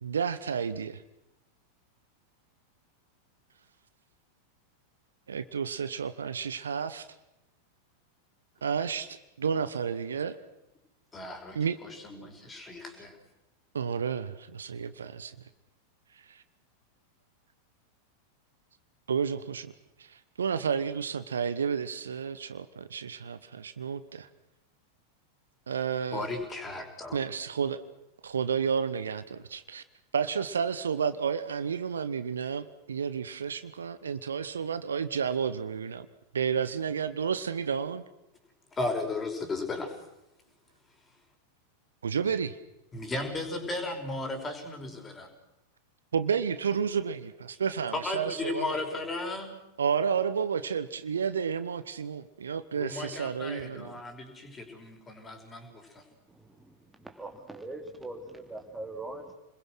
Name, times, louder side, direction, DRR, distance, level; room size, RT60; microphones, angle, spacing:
voice 1, 0.0-1.0 5.3-7.1 8.6-10.4 11.5-11.8 13.7-15.3 16.3-16.4 19.1-19.7 20.0-22.6 22.9-23.4 23.6-24.0 25.7-26.3 27.1-27.8 28.2-29.8 30.1-36.1 36.3-38.0 42.0-42.6 46.1-48.8 49.8-53.9, right 6 dB, 70° right, 13 dB, 1.1 m, -31 dB
voice 2, 11.1-13.2 26.1-27.2 38.7-40.0 42.9-45.3 47.9-49.6 52.7-56.0, left 2 dB, 15° left, 5 dB, 5.5 m, -35 dB
voice 3, 57.0-59.3, right 2 dB, 5° right, 4 dB, 2.8 m, -41 dB
30.0 x 21.5 x 6.3 m, 0.90 s
figure-of-eight pair, 90°, 0 cm